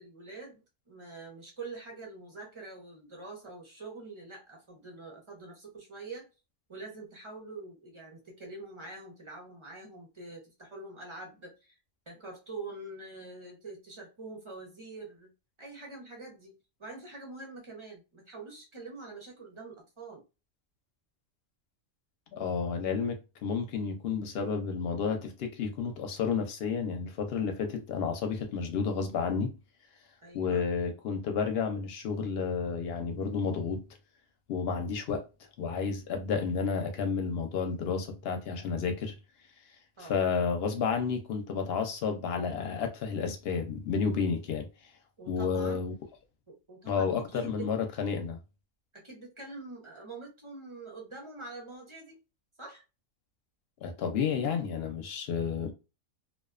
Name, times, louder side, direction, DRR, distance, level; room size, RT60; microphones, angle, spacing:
voice 1, 0.0-6.3 6.7-11.8 12.1-15.3 15.6-16.5 16.8-20.2 30.2-30.7 40.0-40.2 45.2-45.8 46.5-47.7 48.9-52.2 52.6-52.8, right 3 dB, 35° right, 0.5 m, -45 dB
voice 2, 22.3-29.5 30.3-33.8 34.5-35.2 35.6-39.1 40.0-44.7 45.3-45.9 46.9-48.4 53.8-55.7, left 5 dB, 60° left, 0.7 m, -31 dB
2.5 x 2.1 x 2.3 m
omnidirectional pair, 1.4 m